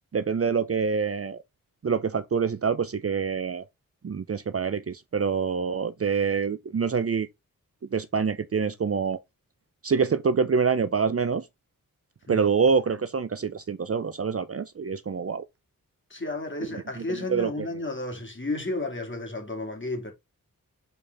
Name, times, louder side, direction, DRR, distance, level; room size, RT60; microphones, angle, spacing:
voice 1, 0.1-1.4 1.8-3.7 4.0-7.3 7.9-9.2 9.8-11.4 12.3-15.4 17.0-17.7, right 5 dB, 40° right, 0.6 m, -26 dB
voice 2, 16.1-20.1, left 2 dB, 35° left, 2.8 m, -32 dB
6.7 x 4.4 x 3.5 m
wide cardioid pair, 70°, 35 cm